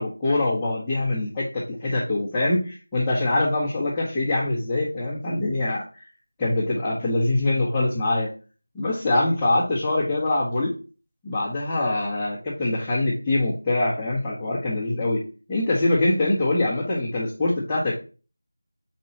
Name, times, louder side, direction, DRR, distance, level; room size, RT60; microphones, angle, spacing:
voice 1, 0.0-6.1 6.4-8.3 8.7-10.7 11.2-15.2 15.5-17.9, left 2 dB, 10° left, -13 dB, 1.2 m, -24 dB
5.2 x 4.4 x 4.1 m, 0.35 s
figure-of-eight pair, 170°, 0 cm